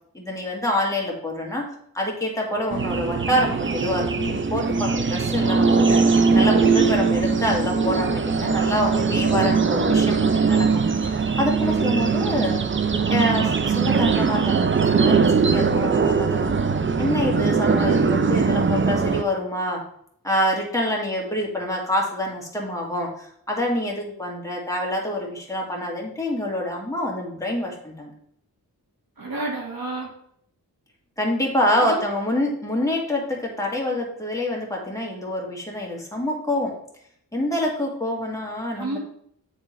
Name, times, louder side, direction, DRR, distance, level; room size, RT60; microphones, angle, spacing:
voice 1, 0.1-12.6 13.1-16.5 17.0-19.8 20.2-28.1 31.2-36.7 37.3-39.0, left 1 dB, 10° left, -2 dB, 2.0 m, -26 dB
sound 1, 2.7-19.2, right 5 dB, 30° right, 0.5 m, -21 dB
voice 2, 29.2-30.1 31.8-32.0 38.7-39.0, right 2 dB, 60° right, -3 dB, 1.7 m, -30 dB
8.7 x 3.7 x 3.1 m, 0.68 s
cardioid pair, 50°, 39 cm